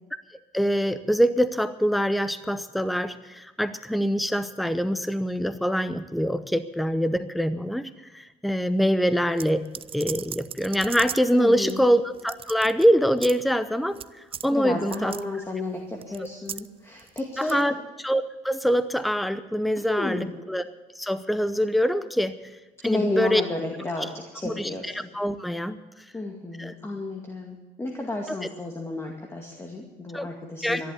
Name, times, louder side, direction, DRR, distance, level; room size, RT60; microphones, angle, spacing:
voice 1, 0.5-9.6 9.9-15.2 17.4-20.6 21.0-22.3 22.8-23.4 24.4-25.8 26.6-26.7 28.3-28.4 30.1-30.3 30.6-30.8, equal, ahead, 12 dB, 0.7 m, -24 dB
sound 1, 9.4-11.3 11.7-11.8 12.1-12.8 13.2-13.4 13.9-14.1 14.3-14.5 14.8-15.2 16.0-16.7 17.0-17.6, right 8 dB, 35° right, 0.5 m, -37 dB
voice 2, 11.3-11.8 14.5-17.6 19.8-20.3 22.8-25.1 26.1-30.9, left 2 dB, 15° left, 1 dB, 2.2 m, -32 dB
13.5 x 11.0 x 8.6 m, 1.1 s
cardioid pair, 110°, 16 cm